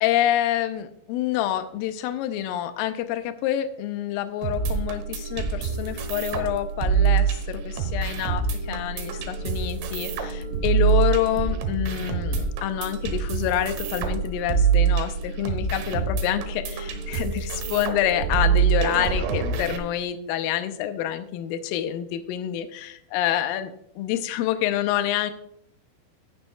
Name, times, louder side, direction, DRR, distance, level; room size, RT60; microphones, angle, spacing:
voice 1, 0.0-25.3, left 11 dB, 80° left, 9 dB, 2.2 m, -27 dB
sound 1, 4.4-19.8, right 6 dB, 80° right, 3.2 m, -25 dB
11.5 x 10.5 x 2.3 m, 0.71 s
omnidirectional pair, 4.7 m